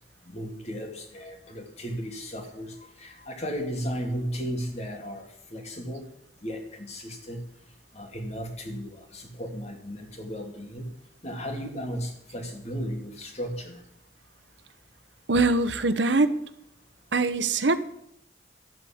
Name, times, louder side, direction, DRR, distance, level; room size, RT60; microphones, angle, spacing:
voice 1, 0.2-6.1 6.4-7.4 7.9-10.9 11.2-13.8, equal, 40° left, 4 dB, 2.4 m, -35 dB
voice 2, 15.3-16.3 17.1-17.8, right 3 dB, 90° right, 13 dB, 1.0 m, -22 dB
12.5 x 8.4 x 8.7 m, 0.74 s
head